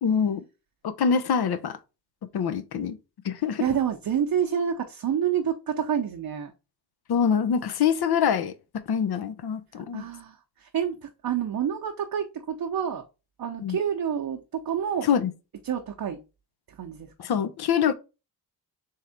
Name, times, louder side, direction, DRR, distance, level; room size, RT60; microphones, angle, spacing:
voice 1, 0.0-0.4 0.8-1.8 2.3-3.0 3.2-3.6 7.1-8.5 8.9-10.1 13.6-13.8 15.0-15.3 17.2-17.9, left 7 dB, 55° left, 0.7 m, -24 dB
voice 2, 3.6-6.5 9.9-13.0 13.4-15.1 15.6-16.2 16.7-17.1, right 8 dB, 50° right, 0.8 m, -28 dB
3.6 x 3.3 x 4.2 m
cardioid pair, 60°, 45 cm